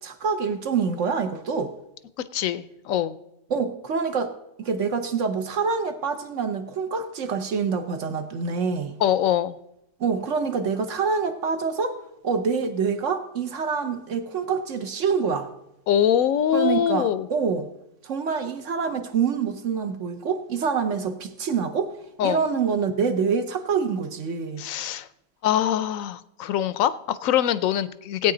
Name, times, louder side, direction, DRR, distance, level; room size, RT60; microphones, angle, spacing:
voice 1, 0.0-1.7 3.5-4.3 4.6-9.0 10.0-12.0 12.2-15.5 16.5-17.7 18.0-21.9 22.2-24.6, right 5 dB, 65° right, 8 dB, 1.2 m, -26 dB
voice 2, 2.3-3.1 9.0-9.6 15.9-17.3 22.2-22.4 24.6-25.1 25.4-28.3, left 10 dB, 75° left, 15 dB, 1.0 m, -23 dB
17.0 x 9.0 x 3.8 m, 0.83 s
omnidirectional pair, 1.4 m